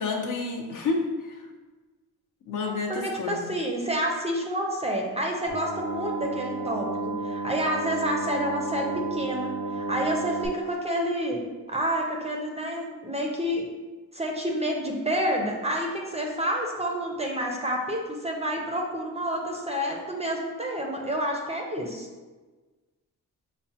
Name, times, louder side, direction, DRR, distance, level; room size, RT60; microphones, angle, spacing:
voice 1, 0.0-1.4 2.5-3.4, left 3 dB, 60° left, 1 dB, 0.6 m, -29 dB
voice 2, 2.7-11.4 11.7-13.7 14.1-22.1, equal, 20° right, 0 dB, 0.4 m, -29 dB
sound 1, 5.5-10.5, right 2 dB, 85° left, 0.9 m, -32 dB
5.6 x 2.1 x 2.7 m, 1.3 s
wide cardioid pair, 125°, 35 cm